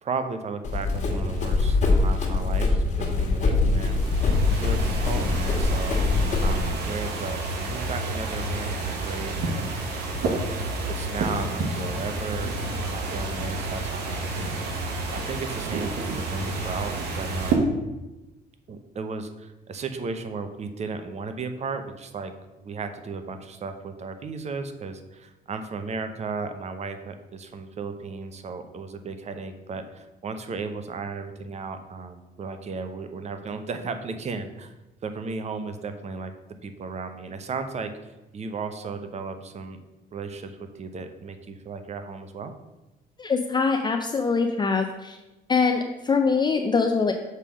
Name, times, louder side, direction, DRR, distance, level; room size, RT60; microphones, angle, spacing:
voice 1, 0.0-4.0 4.5-6.0 6.4-9.7 10.2-10.5 10.9-12.5 12.9-14.6 15.1-17.6 18.7-22.3 22.6-34.8 35.0-36.3 36.6-37.9 38.3-39.8 40.1-42.5, right 4 dB, 40° right, 8 dB, 0.8 m, -35 dB
Run, 0.6-6.7, left 3 dB, 45° left, 1.8 m, -23 dB
sound 1, 3.7-17.5, right 2 dB, 90° right, 1.2 m, -30 dB
voice 2, 43.2-45.2 45.5-47.1, left 4 dB, 25° left, 5 dB, 0.5 m, -23 dB
6.6 x 3.6 x 6.2 m, 1.0 s
cardioid pair, 105°, 17 cm